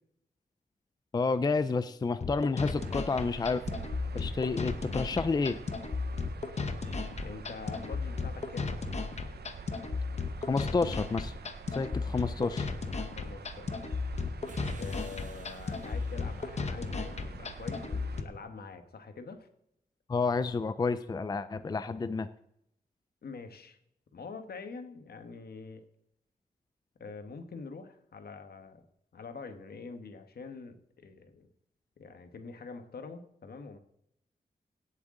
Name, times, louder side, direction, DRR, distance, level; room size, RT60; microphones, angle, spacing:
voice 1, 1.1-3.6 4.1-5.6 10.5-11.3 11.7-12.7 20.1-22.3, left 4 dB, 25° left, 13 dB, 0.4 m, -30 dB
sound 1, 2.2-18.2, left 4 dB, 40° left, 0.9 m, -35 dB
sound 2, 2.7-18.2, right 5 dB, 80° right, 0.8 m, -46 dB
voice 2, 7.2-8.8 13.1-13.9 14.7-19.5 23.2-23.8 24.1-25.8 27.0-28.8 29.1-31.5 32.0-33.8, left 4 dB, 70° left, 8 dB, 1.4 m, -45 dB
sound 3, 14.5-17.2, right 3 dB, 50° right, 1.5 m, -49 dB
17.5 x 8.2 x 3.8 m, 0.74 s
wide cardioid pair, 175°, 17 cm